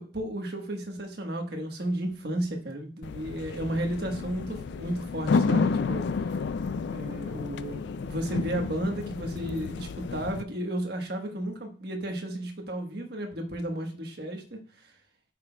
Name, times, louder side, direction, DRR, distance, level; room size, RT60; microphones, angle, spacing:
voice 1, 0.0-6.3 6.9-14.6, right 1 dB, 55° right, 3 dB, 1.3 m, -33 dB
sound 1, 3.0-10.4, left 4 dB, 65° left, 0.3 m, -30 dB
8.2 x 5.9 x 2.3 m, 0.41 s
head